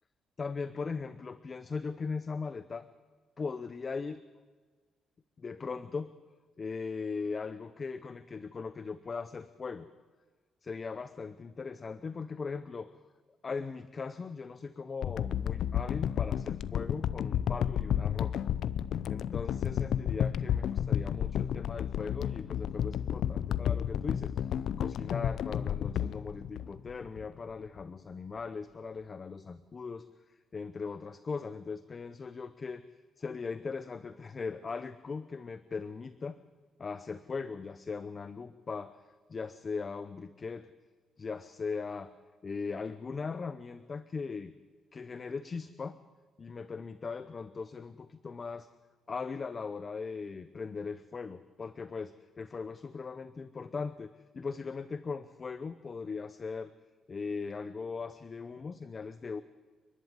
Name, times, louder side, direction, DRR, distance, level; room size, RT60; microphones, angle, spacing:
voice 1, 0.4-2.9 3.4-4.2 5.4-6.1 6.6-9.9 10.6-13.0 13.4-18.3 19.1-24.5 24.8-32.8 33.2-36.4 36.8-39.0 39.3-40.7 41.2-42.1 42.4-44.5 44.9-46.0 46.4-48.7 49.1-56.7 57.1-59.4, left 4 dB, 30° left, 13 dB, 0.7 m, -39 dB
sound 1, 15.0-27.2 27.8-27.9, left 9 dB, 65° left, 0.6 m, -32 dB
30.0 x 11.5 x 9.7 m, 1.5 s
cardioid pair, 140°, 0 cm